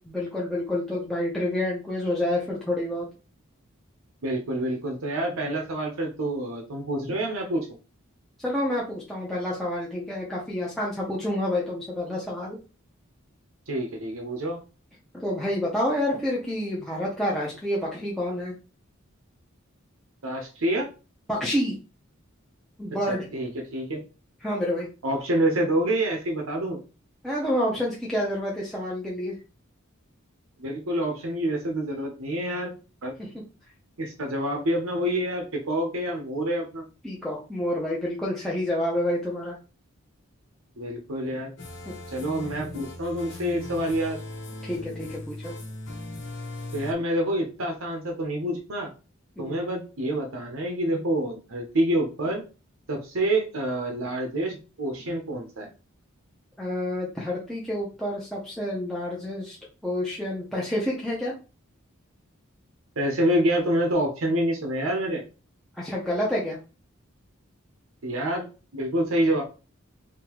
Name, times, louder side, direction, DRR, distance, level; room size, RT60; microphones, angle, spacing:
voice 1, 0.1-3.1 8.4-12.6 15.1-18.5 21.3-21.7 22.8-23.3 24.4-24.9 27.2-29.4 33.2-33.4 37.0-39.6 41.8-41.9 44.6-45.5 49.4-49.6 56.6-59.6 59.8-61.3 65.7-66.6, left 1 dB, ahead, -6 dB, 0.7 m, -28 dB
voice 2, 4.2-7.7 13.7-14.6 20.2-20.9 23.1-24.0 25.0-26.8 30.6-32.7 33.0-33.1 34.0-36.8 40.8-41.5 42.1-44.2 46.7-48.9 49.4-52.4 52.9-55.7 63.0-65.2 68.0-68.5 68.7-69.4, right 1 dB, 80° right, 1 dB, 0.9 m, -27 dB
sound 1, 41.6-46.9, left 2 dB, 55° left, 1.1 m, -38 dB
3.7 x 2.8 x 3.0 m, 0.32 s
head